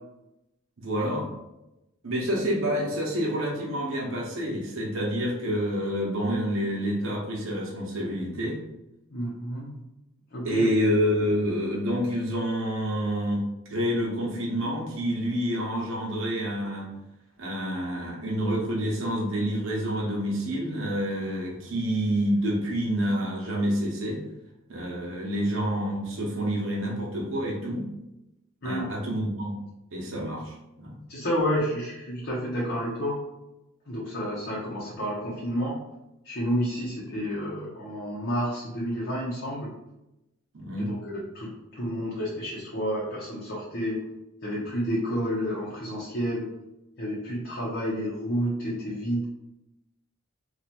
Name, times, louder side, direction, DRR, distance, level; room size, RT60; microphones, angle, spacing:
voice 1, 0.8-1.3 2.0-8.6 10.4-16.9 17.4-24.2 24.7-27.9 28.6-29.6 29.9-31.0 40.5-40.9, equal, 70° right, -4 dB, 0.9 m, -28 dB
voice 2, 9.1-9.8 10.3-10.7 28.6-28.9 31.1-33.2 33.9-35.7 36.2-39.7 40.8-41.0 41.3-44.0 44.4-46.5 47.0-49.2, equal, 55° left, -7 dB, 0.9 m, -30 dB
2.9 x 2.4 x 4.2 m, 0.92 s
head